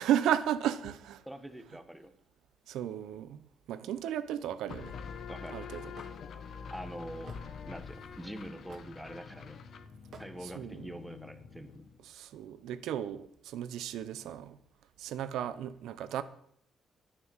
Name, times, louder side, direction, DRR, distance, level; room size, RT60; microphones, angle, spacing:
voice 1, 0.0-1.2 2.7-4.9 5.5-5.9 10.4-10.9 12.1-14.6 15.0-16.2, right 10 dB, 85° right, 0.9 m, -34 dB
voice 2, 1.2-2.1 5.3-5.6 6.7-7.4 7.7-9.6 10.2-11.8, right 1 dB, 5° right, 1.5 m, -44 dB
sound 1, 4.7-12.0, left 6 dB, 60° left, 1.2 m, -46 dB
Hammer / Wood, 5.9-6.1 7.3-7.4 8.7-9.0 10.1-10.3, right 5 dB, 60° right, 2.0 m, -50 dB
10.0 x 10.0 x 7.3 m
cardioid pair, 90°, 0 cm